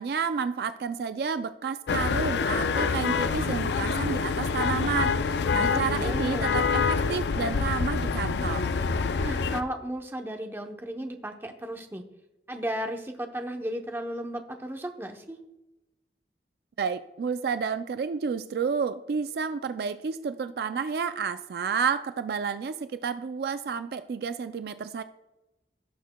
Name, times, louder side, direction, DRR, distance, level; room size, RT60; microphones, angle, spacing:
voice 1, 0.0-8.8 16.8-25.0, right 6 dB, 60° right, 11 dB, 0.3 m, -30 dB
sound 1, 1.9-9.6, left 5 dB, 70° left, 0.4 m, -26 dB
voice 2, 5.7-6.5 9.2-12.0 12.5-15.4, right 1 dB, 15° right, 4 dB, 0.7 m, -34 dB
17.5 x 6.4 x 2.2 m, 0.98 s
head